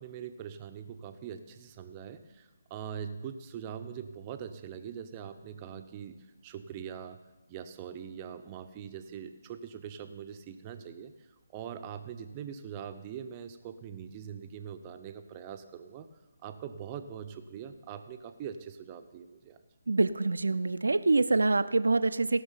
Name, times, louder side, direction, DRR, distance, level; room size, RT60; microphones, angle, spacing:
voice 1, 0.0-6.2 6.4-7.2 7.5-11.1 11.5-16.1 16.4-19.6, right 8 dB, 25° right, 8 dB, 0.8 m, -42 dB
voice 2, 19.9-22.4, right 3 dB, 85° right, 12 dB, 0.5 m, -25 dB
17.0 x 6.0 x 5.6 m, 1.1 s
figure-of-eight pair, 150°, 0 cm